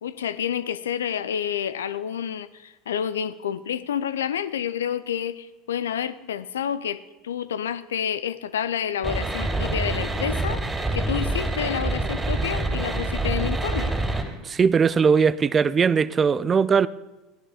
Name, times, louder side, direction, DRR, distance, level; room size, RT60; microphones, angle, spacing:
voice 1, 0.0-10.6 10.9-13.9, left 9 dB, 80° left, 0.5 m, -29 dB
sound 1, 9.0-14.2, right 2 dB, 15° right, 3.1 m, -26 dB
voice 2, 14.4-16.9, right 6 dB, 30° right, 0.5 m, -19 dB
15.0 x 11.0 x 5.0 m
hypercardioid pair, 75°, 0 cm